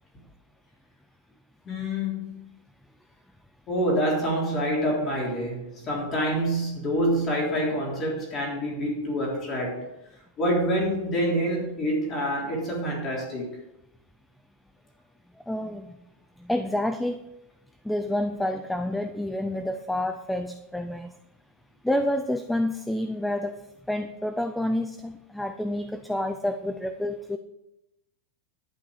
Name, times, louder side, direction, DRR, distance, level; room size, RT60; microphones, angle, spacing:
voice 1, 1.7-2.4 3.7-9.8 10.4-13.5, equal, 20° left, -2 dB, 3.5 m, -27 dB
voice 2, 15.5-16.0 16.4-17.2 17.8-21.1 21.8-23.6 23.9-27.4, left 1 dB, ahead, 9 dB, 0.4 m, -28 dB
11.0 x 9.1 x 5.0 m, 0.89 s
supercardioid pair, 180°, 0 cm